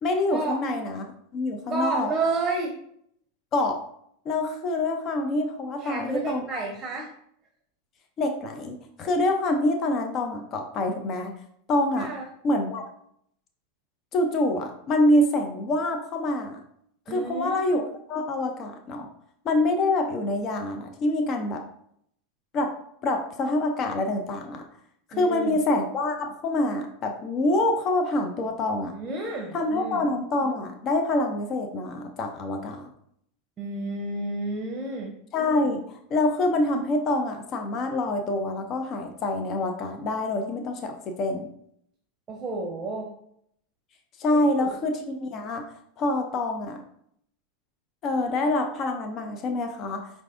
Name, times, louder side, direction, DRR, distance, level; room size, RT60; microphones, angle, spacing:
voice 1, 0.0-1.1 1.3-2.1 3.5-3.8 4.3-6.4 8.2-11.3 11.7-12.1 12.4-12.8 14.1-16.6 17.1-17.8 18.1-19.1 19.4-21.6 22.5-22.7 23.0-24.6 25.2-28.9 29.5-32.9 35.3-41.5 44.2-46.8 48.0-50.1, left 2 dB, 40° left, 4 dB, 0.5 m, -26 dB
voice 2, 1.7-2.7 5.8-7.1 12.0-12.2 17.1-17.6 25.1-25.6 28.9-30.1 33.6-35.1 42.3-43.1 44.5-44.7, right 2 dB, 25° right, 1 dB, 0.7 m, -30 dB
4.6 x 2.5 x 2.5 m, 0.69 s
hypercardioid pair, 90°, 0 cm